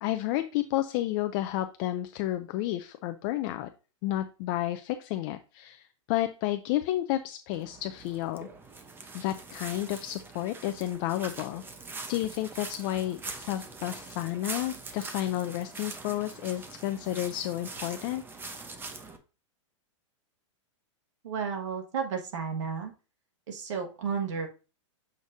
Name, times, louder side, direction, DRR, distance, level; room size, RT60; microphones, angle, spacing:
voice 1, 0.0-3.7 4.0-8.5 9.1-11.6 12.1-18.2, left 14 dB, 40° left, 9 dB, 0.5 m, -31 dB
sound 1, 7.5-19.2, right 3 dB, 15° right, 0.9 m, -43 dB
voice 2, 21.2-22.9 23.5-24.5, right 6 dB, 70° right, 2 dB, 1.6 m, -32 dB
7.8 x 5.1 x 2.7 m, 0.33 s
hypercardioid pair, 130°, 16 cm